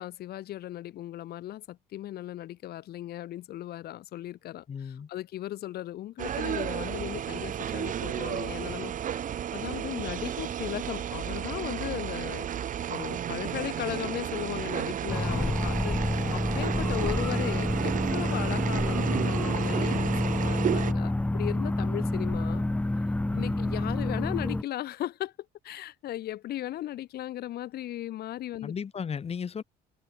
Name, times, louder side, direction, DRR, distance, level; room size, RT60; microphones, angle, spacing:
voice 1, 0.0-8.9 9.5-12.5 12.9-22.6 23.3-25.3 25.6-28.7, left 13 dB, 70° left, 3.1 m, -37 dB
voice 2, 4.7-5.1 15.3-15.5 23.3-23.9 28.6-29.6, left 7 dB, 35° left, 3.1 m, -36 dB
sound 1, 6.2-20.9, right 9 dB, 50° right, 2.4 m, -32 dB
sound 2, 15.1-24.6, left 2 dB, 10° left, 1.5 m, -28 dB
cardioid pair, 110°, 17 cm